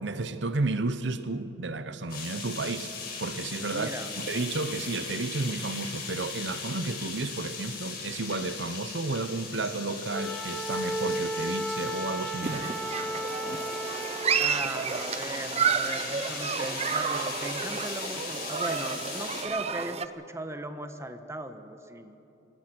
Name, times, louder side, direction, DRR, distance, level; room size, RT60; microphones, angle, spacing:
voice 1, 0.0-2.9 3.2-12.7, right 3 dB, 70° right, 0.9 m, -32 dB
sound 1, 2.1-19.4, left 5 dB, 55° left, 5.7 m, -39 dB
voice 2, 3.7-4.1 14.4-22.2, right 1 dB, 15° right, 1.1 m, -38 dB
Wind instrument woodwind instrument, 10.1-14.5, right 1 dB, 5° left, 1.5 m, -34 dB
Human group actions, 12.4-20.1, right 6 dB, 35° right, 0.6 m, -31 dB
25.5 x 19.5 x 6.2 m
head